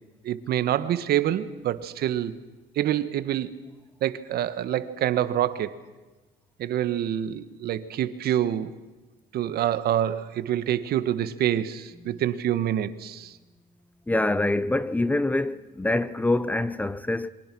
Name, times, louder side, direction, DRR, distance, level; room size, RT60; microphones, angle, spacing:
voice 1, 0.2-2.3 2.7-3.6 4.0-5.7 6.6-8.7 9.3-13.3, right 11 dB, 65° right, 1.4 m, -26 dB
voice 2, 14.1-17.3, left 2 dB, 10° left, 0.7 m, -25 dB
28.0 x 23.5 x 6.2 m
cardioid pair, 110°, 17 cm